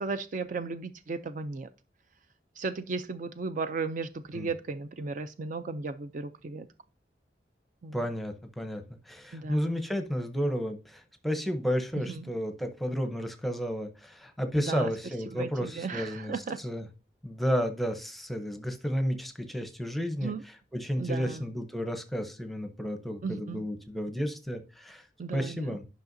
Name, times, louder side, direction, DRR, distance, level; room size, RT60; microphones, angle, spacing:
voice 1, 0.0-1.7 2.6-6.7 7.8-8.0 9.3-9.7 12.1-12.2 14.5-14.9 15.3-16.6 20.2-20.4 21.0-21.5 23.2-23.6 25.2-25.8, right 4 dB, 45° right, 11 dB, 0.4 m, -35 dB
voice 2, 7.9-16.8 17.2-20.3 20.7-25.0 25.3-25.8, equal, ahead, 6 dB, 0.7 m, -32 dB
10.5 x 5.6 x 2.7 m, 0.33 s
head